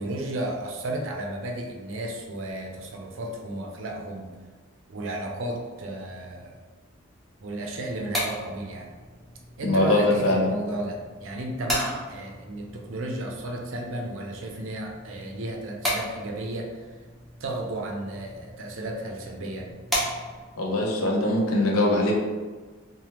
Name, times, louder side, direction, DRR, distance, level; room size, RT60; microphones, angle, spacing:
voice 1, 0.0-4.4 4.9-6.6 7.4-8.9 9.6-16.9 17.4-19.7, right 1 dB, 65° right, 1 dB, 0.5 m, -33 dB
sound 1, 7.7-20.6, equal, ahead, 0.5 m, -36 dB
voice 2, 9.6-10.6 20.6-22.1, left 1 dB, 80° left, -1 dB, 0.6 m, -22 dB
3.2 x 2.1 x 2.9 m, 1.4 s
head